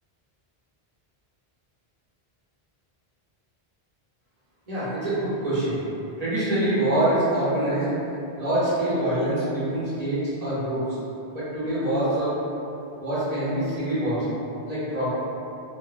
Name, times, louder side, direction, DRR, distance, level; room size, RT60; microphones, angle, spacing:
voice 1, 4.7-5.8 6.2-7.9 8.4-10.8 11.3-12.3 13.0-14.2 14.6-15.1, right 1 dB, 40° right, -11 dB, 0.9 m, -25 dB
2.8 x 2.1 x 2.4 m, 2.8 s
omnidirectional pair, 1.1 m